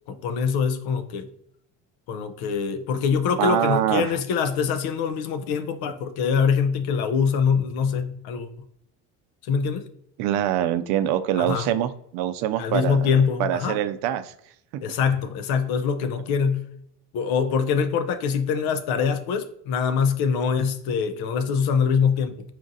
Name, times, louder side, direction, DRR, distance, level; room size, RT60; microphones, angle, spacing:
voice 1, 0.1-1.3 2.1-8.5 9.4-9.8 11.4-11.7 12.6-13.8 14.8-16.7 17.1-22.4, left 6 dB, 75° left, 0.7 m, -24 dB
voice 2, 3.4-4.2 10.2-14.3 14.7-14.8, right 11 dB, 75° right, 0.5 m, -24 dB
4.4 x 2.5 x 3.9 m
supercardioid pair, 90°, 38 cm